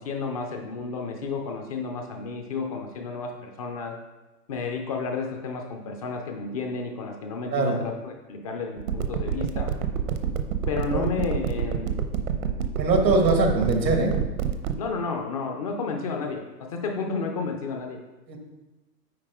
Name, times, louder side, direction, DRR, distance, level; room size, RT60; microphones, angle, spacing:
voice 1, 0.0-4.0 4.5-9.7 10.7-12.0 14.8-18.0, left 4 dB, 25° left, 3 dB, 0.4 m, -31 dB
voice 2, 7.5-7.8 10.9-11.0 12.8-14.1 18.3-18.4, right 2 dB, 85° right, 3 dB, 1.8 m, -22 dB
sound 1, 8.8-14.7, right 9 dB, 55° right, 0.8 m, -26 dB
9.2 x 4.5 x 3.6 m, 1.1 s
hypercardioid pair, 125°, 49 cm